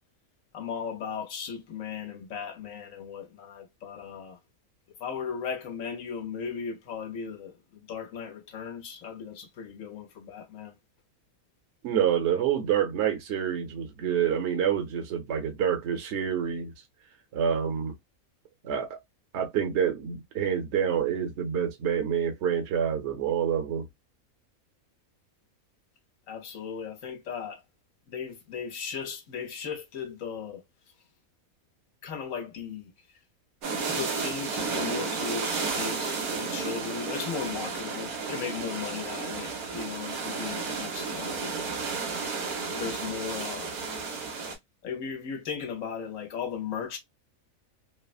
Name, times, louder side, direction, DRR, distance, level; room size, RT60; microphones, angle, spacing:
voice 1, 0.5-4.4 5.0-10.7 26.3-27.6 28.1-30.6 32.0-33.2 33.9-41.5 42.7-43.7 44.8-47.0, left 7 dB, 70° left, 1.1 m, -37 dB
voice 2, 11.8-16.7 17.3-17.9 18.6-19.0 19.3-23.9, right 8 dB, 55° right, 1.0 m, -27 dB
sound 1, 33.6-44.6, right 4 dB, 85° right, 1.4 m, -32 dB
3.4 x 2.1 x 2.4 m
omnidirectional pair, 1.5 m